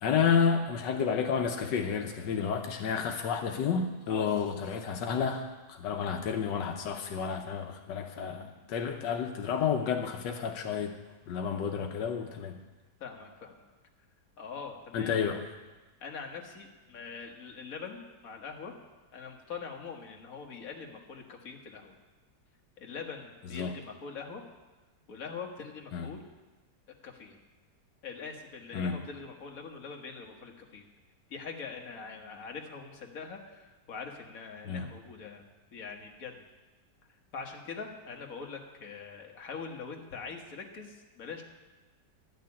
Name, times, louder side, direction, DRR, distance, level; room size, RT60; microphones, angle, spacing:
voice 1, 0.0-11.0 11.3-12.6 14.9-15.4 23.5-23.7 25.9-26.1 28.7-29.0 34.6-34.8, left 6 dB, 85° left, 4 dB, 1.5 m, -30 dB
voice 2, 13.0-13.5 14.4-15.2 16.0-18.7 19.1-22.0 22.8-24.4 25.1-26.2 27.0-27.4 28.0-30.8 31.3-36.4 37.3-41.4, left 5 dB, 55° left, 2 dB, 1.8 m, -43 dB
12.5 x 6.7 x 9.7 m, 1.2 s
omnidirectional pair, 1.9 m